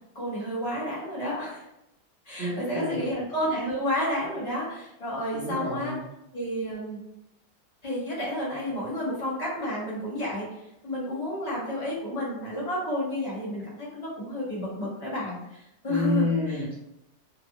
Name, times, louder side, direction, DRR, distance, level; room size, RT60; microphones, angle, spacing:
voice 1, 0.1-1.6 2.3-5.9 6.3-7.0 7.8-10.5 10.8-16.3, left 1 dB, 25° left, -8 dB, 0.9 m, -31 dB
voice 2, 2.4-3.0 5.3-6.0 15.9-16.8, left 1 dB, 60° right, -9 dB, 0.7 m, -29 dB
3.3 x 2.0 x 2.8 m, 0.86 s
omnidirectional pair, 2.0 m